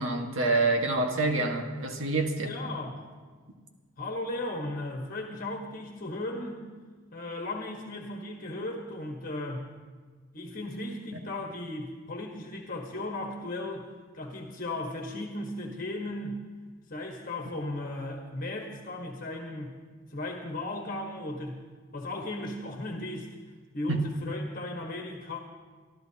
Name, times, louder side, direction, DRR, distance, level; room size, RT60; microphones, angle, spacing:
voice 1, 0.0-2.5 23.9-24.1, right 2 dB, 85° right, 3 dB, 1.7 m, -27 dB
voice 2, 2.3-3.1 4.0-6.6 7.1-9.7 10.3-13.9 14.1-16.4 16.9-19.8 20.1-21.6 21.9-23.3 23.7-25.4, left 2 dB, 45° left, 1 dB, 1.4 m, -36 dB
24.5 x 13.0 x 2.9 m, 1.5 s
head